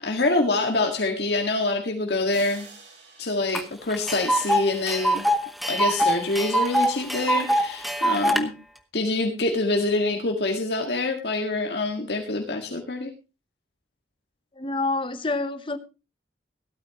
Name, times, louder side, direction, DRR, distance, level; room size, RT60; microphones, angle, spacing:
voice 1, 0.0-2.7 3.2-5.3 5.7-8.5 8.9-13.1, left 2 dB, 65° left, 1.9 m, -25 dB
sound 1, 2.3-5.0, right 4 dB, 85° right, 5.8 m, -49 dB
Tick, 3.5-3.6 3.9-8.4, right 1 dB, ahead, 1.0 m, -23 dB
voice 2, 14.5-15.8, left 3 dB, 30° left, 0.9 m, -27 dB
17.0 x 13.0 x 3.0 m
head